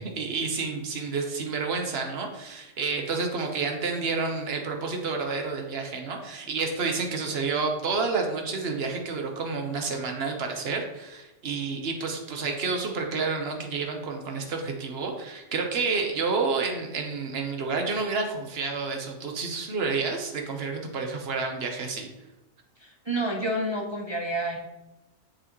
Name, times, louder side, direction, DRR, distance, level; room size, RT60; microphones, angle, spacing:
voice 1, 0.0-22.1, right 4 dB, 60° right, 3 dB, 1.3 m, -29 dB
voice 2, 22.8-24.6, right 1 dB, 30° right, 0 dB, 0.7 m, -29 dB
7.2 x 6.4 x 3.1 m, 1.0 s
omnidirectional pair, 1.2 m